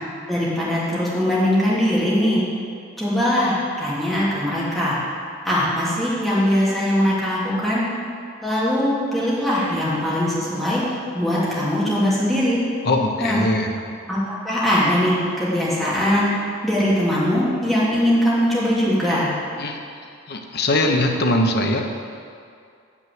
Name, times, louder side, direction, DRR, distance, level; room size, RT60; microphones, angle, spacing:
voice 1, 0.3-2.4 3.0-5.0 5.4-7.8 8.4-10.8 11.1-12.6 13.2-13.4 14.1-16.3 16.6-19.3, equal, ahead, -10 dB, 2.7 m, -21 dB
voice 2, 12.8-13.8 19.6-19.8 20.3-21.8, left 1 dB, 55° left, 3 dB, 1.0 m, -21 dB
7.5 x 6.2 x 7.7 m, 2.3 s
head